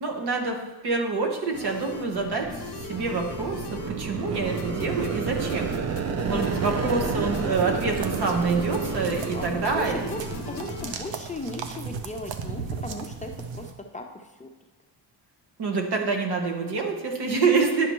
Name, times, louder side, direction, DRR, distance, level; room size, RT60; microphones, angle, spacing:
voice 1, 0.0-5.7 6.2-10.1 15.6-17.9, right 4 dB, 60° right, 2 dB, 1.4 m, -26 dB
sound 1, 1.5-10.9, left 5 dB, 65° left, 0.7 m, -40 dB
sound 2, 1.9-11.7, right 5 dB, 35° right, 0.5 m, -31 dB
voice 2, 4.2-4.6 9.3-14.5, left 1 dB, 15° left, 2 dB, 0.6 m, -37 dB
sound 3, 7.5-13.7, right 6 dB, 85° right, 0.8 m, -38 dB
10.5 x 5.6 x 3.1 m, 1.2 s
cardioid pair, 110°, 44 cm